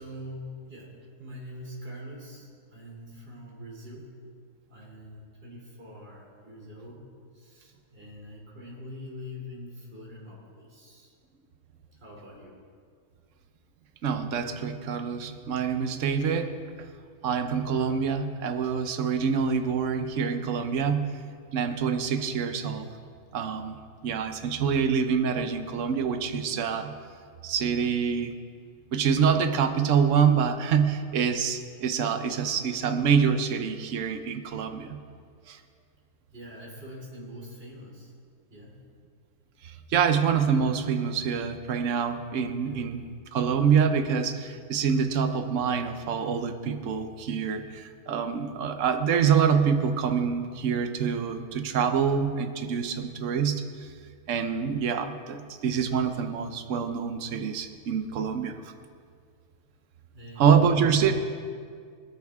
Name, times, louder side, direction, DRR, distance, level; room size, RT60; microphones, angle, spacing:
voice 1, 0.0-4.1 4.7-7.1 7.3-11.1 12.0-12.6 36.3-38.1 38.5-38.8 42.6-42.9 60.1-61.1, left 1 dB, 40° right, -3 dB, 3.5 m, -43 dB
voice 2, 14.0-16.5 17.2-21.2 21.5-22.9 23.3-26.9 27.4-28.3 28.9-35.0 35.5-35.6 39.6-43.0 43.3-53.6 54.3-58.5 60.4-61.1, right 6 dB, 60° right, 7 dB, 1.2 m, -26 dB
21.0 x 13.0 x 3.6 m, 2.1 s
omnidirectional pair, 1.5 m